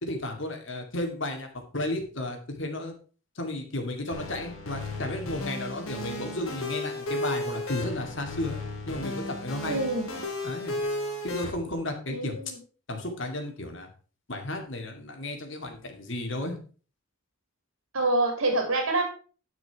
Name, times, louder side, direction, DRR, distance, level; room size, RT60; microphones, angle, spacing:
voice 1, 0.0-1.5 1.7-2.9 3.4-8.6 8.9-9.8 10.4-10.7 11.2-12.3 12.9-13.9 14.3-16.6, left 1 dB, 60° left, 4 dB, 2.3 m, -33 dB
sound 1, 4.1-11.5, left 1 dB, 85° left, 3.1 m, -34 dB
voice 2, 9.7-10.2 12.1-12.6 17.9-19.0, right 2 dB, 80° right, 3 dB, 2.9 m, -26 dB
10.5 x 6.6 x 4.7 m, 0.39 s
head